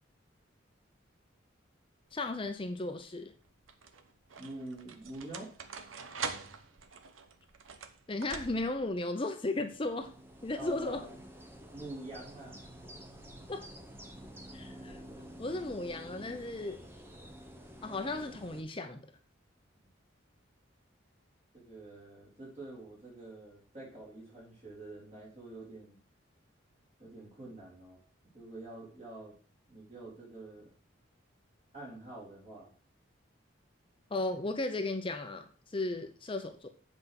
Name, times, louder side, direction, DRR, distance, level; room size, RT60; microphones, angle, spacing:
voice 1, 2.1-3.3 8.1-10.1 10.4-11.0 13.5-13.7 14.5-15.0 15.4-16.8 17.8-19.0 34.1-35.4 35.7-36.7, left 2 dB, 25° left, 7 dB, 0.6 m, -35 dB
sound 1, 2.1-2.6 3.4-8.9, right 5 dB, 85° right, 0.9 m, -44 dB
voice 2, 4.4-5.5 10.5-11.2 11.7-12.6 21.5-26.0 27.0-28.0 28.3-29.3 29.7-30.6 31.7-32.7, right 2 dB, 35° right, -5 dB, 3.6 m, -46 dB
sound 2, 9.6-18.6, equal, 10° right, 1.0 m, -50 dB
8.0 x 5.0 x 5.8 m, 0.41 s
head